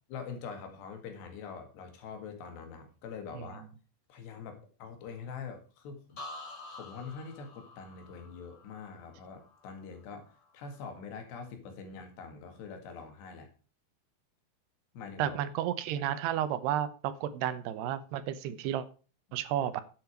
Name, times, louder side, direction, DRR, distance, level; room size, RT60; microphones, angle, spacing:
voice 1, 0.1-3.6 4.1-6.2 6.7-13.5 14.9-15.4, left 5 dB, 80° left, 6 dB, 4.1 m, -44 dB
sound 1, 6.2-10.0 10.3-10.8, left 2 dB, 30° left, 2.2 m, -48 dB
voice 2, 15.2-18.9 19.3-19.8, right 11 dB, 80° right, 13 dB, 3.0 m, -32 dB
10.5 x 8.0 x 4.6 m, 0.36 s
omnidirectional pair, 4.8 m